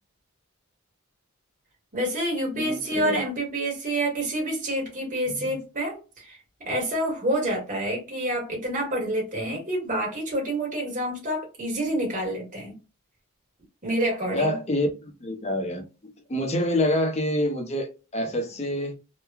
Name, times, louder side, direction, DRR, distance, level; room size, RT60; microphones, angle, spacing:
voice 1, 1.9-12.8 13.8-14.6, right 1 dB, 35° right, 1.4 m, -28 dB
voice 2, 2.5-3.2 5.3-5.4 14.3-15.8 16.3-19.0, left 1 dB, 30° left, 0.6 m, -27 dB
3.0 x 2.2 x 2.3 m
head